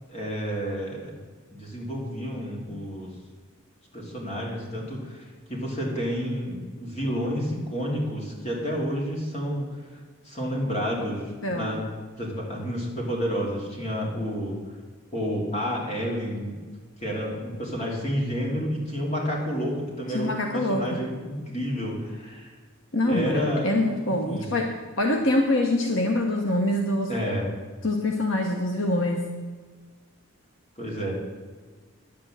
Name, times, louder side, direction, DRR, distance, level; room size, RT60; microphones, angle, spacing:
voice 1, 0.1-1.1 1.5-3.1 3.9-9.7 10.2-11.9 12.2-14.6 15.1-16.6 17.0-22.5 23.1-23.7 24.3-24.4 27.1-27.5 30.8-31.1, equal, 30° left, -3 dB, 3.2 m, -30 dB
voice 2, 11.4-11.8 20.1-21.0 22.9-27.1 27.8-29.2, left 1 dB, 65° left, 2 dB, 1.1 m, -25 dB
10.5 x 8.7 x 7.6 m, 1.4 s
head